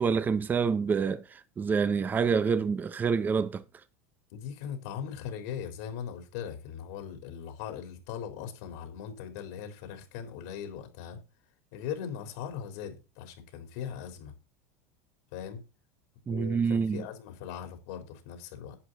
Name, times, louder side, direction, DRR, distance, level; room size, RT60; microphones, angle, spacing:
voice 1, 0.0-3.6 16.3-17.1, right 5 dB, 20° right, 0.9 m, -27 dB
voice 2, 4.3-11.2 11.7-14.3 15.3-15.6 16.3-18.8, left 8 dB, 70° left, 4.0 m, -39 dB
11.0 x 8.4 x 4.1 m
supercardioid pair, 130°, 9 cm